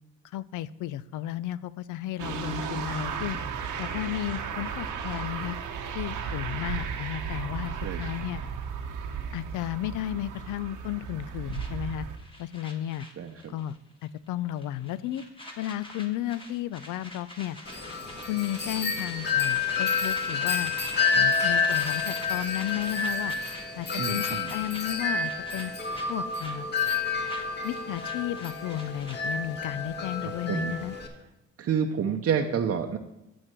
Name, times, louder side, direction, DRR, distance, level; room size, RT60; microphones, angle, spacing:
voice 1, 0.3-3.4 3.8-5.6 5.9-8.4 9.3-12.1 12.4-13.1 13.5-13.7 14.0-15.2 15.6-17.6 18.3-20.7 21.1-23.3 23.8-25.7 26.1-26.7 27.6-30.9, left 12 dB, 85° left, 17 dB, 0.5 m, -33 dB
sound 1, 2.2-12.2, right 6 dB, 90° right, 1.0 m, -35 dB
sound 2, 11.5-13.8 14.0-14.3 14.6-29.5, left 1 dB, 15° left, 1.7 m, -44 dB
voice 2, 13.2-13.5 24.0-24.5 30.2-30.8 31.6-33.0, right 7 dB, 50° right, 3 dB, 0.7 m, -29 dB
Wind chime, 17.7-31.1, left 5 dB, 35° left, 1.7 m, -29 dB
7.9 x 6.3 x 6.0 m, 0.91 s
cardioid pair, 90°, 30 cm